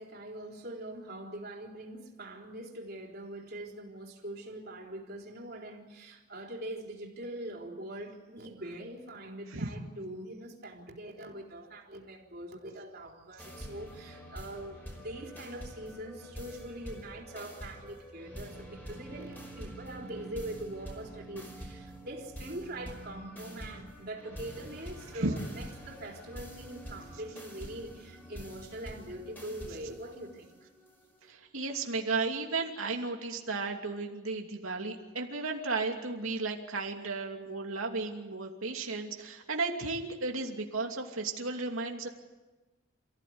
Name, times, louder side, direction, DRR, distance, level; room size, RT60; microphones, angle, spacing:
voice 1, 0.0-30.5, right 1 dB, 45° right, 0 dB, 4.0 m, -43 dB
sound 1, 13.4-31.3, equal, 10° left, 5.3 m, -46 dB
voice 2, 31.3-42.1, right 3 dB, 90° right, 2 dB, 2.8 m, -34 dB
28.5 x 15.5 x 9.6 m, 1.2 s
head